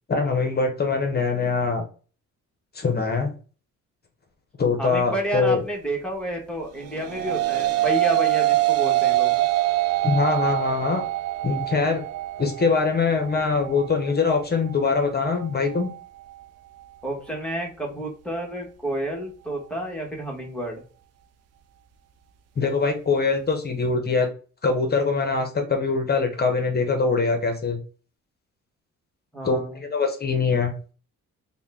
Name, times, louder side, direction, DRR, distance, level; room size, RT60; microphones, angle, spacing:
voice 1, 0.1-1.8 2.7-3.3 4.6-5.6 10.0-11.0 11.4-12.0 12.4-15.9 22.6-24.3 24.6-27.8 29.4-29.6 29.9-30.7, left 4 dB, 30° left, 4 dB, 0.9 m, -23 dB
voice 2, 4.8-9.3 17.0-20.8 29.3-29.8, right 1 dB, 5° left, -1 dB, 1.2 m, -30 dB
sound 1, 6.8-16.0, right 16 dB, 55° right, 0.4 m, -25 dB
3.6 x 2.2 x 3.4 m, 0.38 s
cardioid pair, 90°, 30 cm